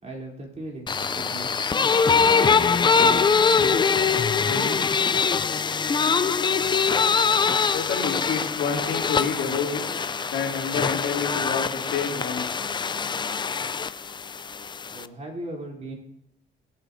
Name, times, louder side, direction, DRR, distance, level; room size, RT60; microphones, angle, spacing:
voice 1, 0.0-3.9 4.4-4.9 14.9-15.9, right 2 dB, 35° right, -1 dB, 3.3 m, -37 dB
sound 1, 0.9-15.1, left 5 dB, 25° left, 0.4 m, -23 dB
voice 2, 7.7-9.8 10.3-12.5, left 6 dB, 75° left, -1 dB, 2.7 m, -28 dB
21.5 x 8.1 x 2.7 m, 0.75 s
cardioid pair, 90°, 20 cm